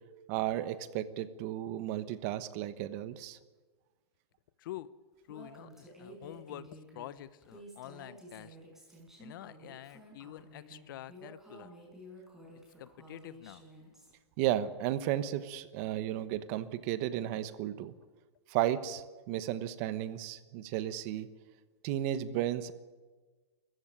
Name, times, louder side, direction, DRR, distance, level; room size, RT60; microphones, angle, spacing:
voice 1, 0.3-3.4 14.4-17.9 18.5-21.3 21.8-22.7, right 12 dB, 35° right, 14 dB, 1.1 m, -34 dB
voice 2, 4.6-4.9 5.3-8.6 9.2-11.7 12.8-13.7, left 13 dB, 50° left, 17 dB, 0.9 m, -47 dB
Female speech woman speaking, 5.3-14.1, equal, 5° right, 5.2 m, -52 dB
22.5 x 14.5 x 9.9 m, 1.3 s
hypercardioid pair, 160°, 14 cm